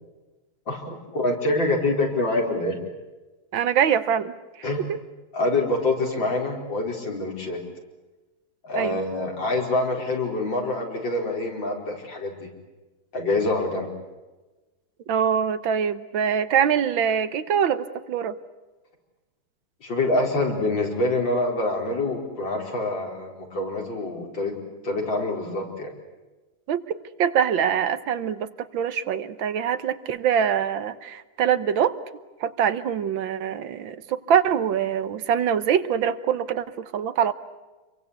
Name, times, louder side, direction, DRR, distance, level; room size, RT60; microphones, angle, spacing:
voice 1, 0.7-2.8 4.6-4.8 5.3-7.6 8.6-12.5 13.1-13.9 19.8-24.6 24.8-25.9, left 2 dB, 65° left, 1 dB, 5.2 m, -26 dB
voice 2, 3.5-4.3 4.9-5.0 8.8-9.0 15.1-18.4 26.7-32.0 32.4-37.3, right 8 dB, 70° right, 13 dB, 1.8 m, -24 dB
28.0 x 23.0 x 8.2 m, 1.2 s
omnidirectional pair, 2.2 m